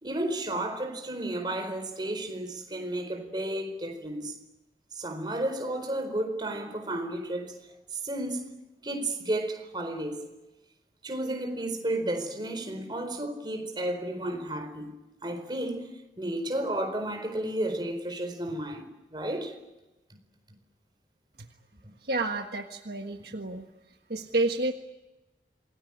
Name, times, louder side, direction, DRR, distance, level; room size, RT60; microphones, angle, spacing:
voice 1, 0.0-4.4 4.9-7.6 7.9-8.5 8.8-10.3 11.0-14.9 15.2-15.9 16.2-19.6 21.8-21.9, right 1 dB, 25° right, 4.5 m, -32 dB
voice 2, 22.0-23.6 24.1-24.7, right 2 dB, 60° right, 1.5 m, -29 dB
27.5 x 19.0 x 10.0 m
head